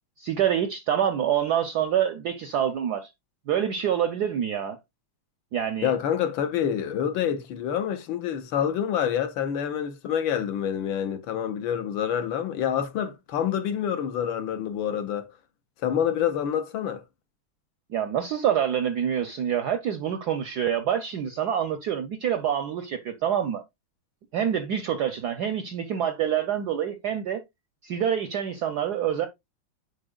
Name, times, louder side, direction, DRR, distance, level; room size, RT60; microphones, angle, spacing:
voice 1, 0.2-3.1 3.5-4.8 5.5-5.9 17.9-23.6 24.3-27.4 27.8-29.3, right 9 dB, 75° right, 0.9 m, -26 dB
voice 2, 5.8-15.3 15.8-17.0, left 9 dB, 70° left, 1.3 m, -27 dB
9.9 x 4.2 x 2.3 m
omnidirectional pair, 2.4 m